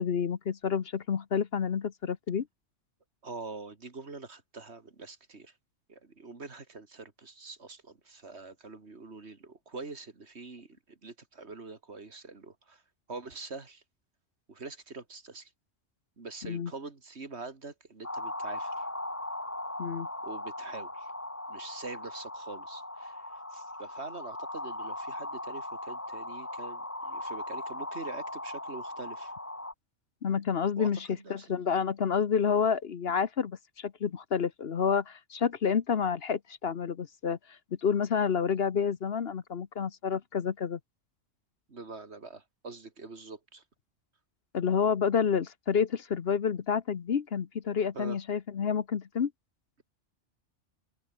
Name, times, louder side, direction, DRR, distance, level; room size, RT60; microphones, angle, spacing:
voice 1, 0.0-2.5 16.4-16.7 19.8-20.1 30.2-37.4 37.8-40.8 44.5-49.3, left 6 dB, 55° left, 1.1 m, -29 dB
voice 2, 3.2-5.5 5.9-12.8 13.1-13.8 14.5-15.5 16.2-18.9 20.2-21.1 21.5-29.3 30.8-31.6 41.7-43.6 47.9-48.2, right 3 dB, 60° right, 2.7 m, -44 dB
sound 1, 18.0-29.7, left 1 dB, 10° left, 1.4 m, -39 dB
omnidirectional pair, 1.3 m